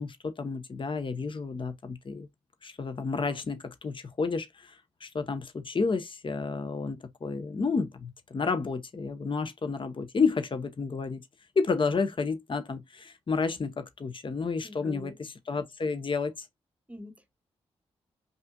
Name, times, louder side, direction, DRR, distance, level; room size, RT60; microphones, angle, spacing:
voice 1, 0.0-2.3 2.6-4.7 5.0-11.2 11.6-16.3, left 4 dB, 40° left, 0.9 m, -31 dB
voice 2, 14.6-15.2 16.9-17.3, right 1 dB, 10° right, 0.9 m, -44 dB
5.3 x 2.6 x 2.3 m
supercardioid pair, 45°, 13 cm